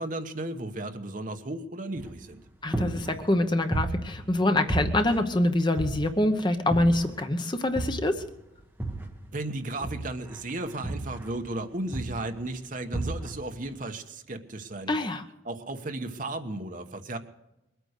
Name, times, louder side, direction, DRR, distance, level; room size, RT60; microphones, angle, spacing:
voice 1, 0.0-2.4 9.3-14.9 15.4-17.2, right 2 dB, 45° right, 6 dB, 1.1 m, -34 dB
sound 1, 2.0-2.4 2.7-4.4 4.7-6.3 6.7-7.3 7.8-9.3 9.8-11.6 11.9-12.4 12.9-13.5, right 2 dB, 10° right, 1.7 m, -33 dB
voice 2, 2.6-8.2 14.9-15.2, left 1 dB, 25° left, 7 dB, 0.9 m, -25 dB
21.5 x 9.2 x 6.6 m, 0.91 s
head